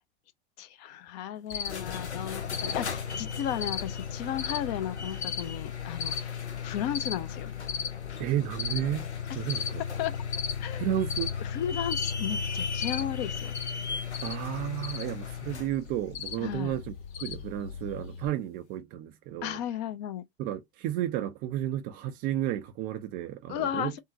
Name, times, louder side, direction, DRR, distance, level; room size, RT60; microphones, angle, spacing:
voice 1, 0.6-7.5 9.3-9.4 10.0-10.2 10.6-11.0 11.4-13.5 16.4-16.8 19.4-20.2 23.5-24.0, left 10 dB, 40° left, 0.6 m, -34 dB
sound 1, 1.5-15.8, left 7 dB, 85° left, 0.7 m, -37 dB
Cricket, 1.5-18.3, left 6 dB, 60° left, 2.1 m, -37 dB
voice 2, 8.2-9.1 9.3-9.8 10.8-11.3 14.2-19.6 20.4-24.0, right 12 dB, 30° right, 0.4 m, -32 dB
3.6 x 2.1 x 2.6 m
figure-of-eight pair, 95°, 33 cm